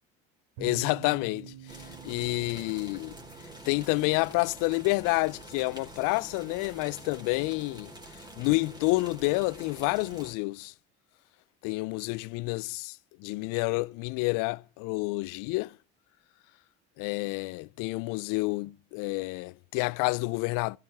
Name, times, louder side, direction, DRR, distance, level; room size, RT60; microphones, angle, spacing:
voice 1, 0.6-3.2 3.7-7.9 8.4-10.7 11.6-15.7 17.0-20.8, left 24 dB, 70° left, 0.5 m, -29 dB
sound 1, 0.6-10.0, right 9 dB, 85° right, 4.6 m, -51 dB
sound 2, 1.7-10.3, right 1 dB, 10° right, 4.0 m, -47 dB
14.5 x 13.0 x 3.5 m
hypercardioid pair, 70°, 33 cm